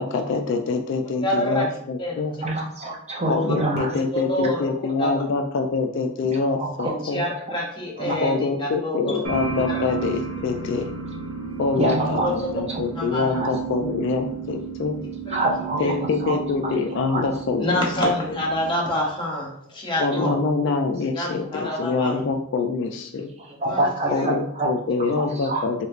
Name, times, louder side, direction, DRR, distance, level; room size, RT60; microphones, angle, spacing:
voice 1, 0.0-2.3 3.3-7.2 8.2-10.9 11.6-15.0 15.8-18.1 20.0-23.3 24.1-25.9, left 4 dB, 55° left, 5 dB, 0.3 m, -25 dB
voice 2, 1.2-1.7 2.0-2.1 3.9-4.6 5.0-5.1 6.8-8.3 8.6-9.2 9.7-9.8 12.2-12.3 12.9-13.3 15.3-15.4 15.8-16.0 17.6-20.3 21.1-22.1 23.6-23.9 25.5-25.6, left 1 dB, 20° left, -2 dB, 0.7 m, -27 dB
voice 3, 2.4-3.9 4.4-4.5 6.2-7.6 8.0-8.2 11.8-12.3 12.7-12.8 13.1-13.5 15.3-15.8 16.2-16.4 16.6-16.7 17.1-17.2 20.1-20.4 23.4-24.7 25.1-25.6, right 2 dB, 30° right, 0 dB, 0.5 m, -27 dB
sound 1, 9.2-18.7, right 6 dB, 80° right, 0.8 m, -33 dB
3.2 x 3.0 x 2.4 m, 0.68 s
head